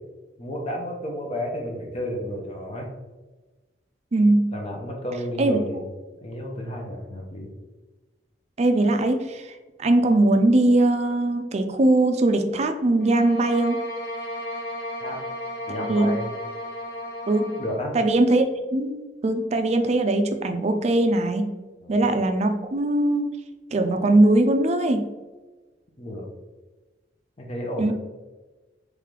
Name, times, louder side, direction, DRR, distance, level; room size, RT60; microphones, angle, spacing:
voice 1, 0.4-2.9 4.5-5.9 6.2-7.5 15.0-15.2 15.7-16.3 17.6-18.0 21.8-22.0 26.0-26.3 27.4-27.9, equal, 35° left, 0 dB, 0.8 m, -32 dB
voice 2, 4.1-4.5 5.4-5.6 8.6-9.5 9.8-13.8 15.9-16.1 17.3-17.6 17.9-21.5 21.9-23.3 23.7-25.1 27.8-27.9, right 2 dB, 40° right, 6 dB, 0.4 m, -21 dB
sound 1, 13.0-17.8, equal, 60° left, 1.4 m, -34 dB
3.7 x 3.2 x 3.2 m, 1.2 s
head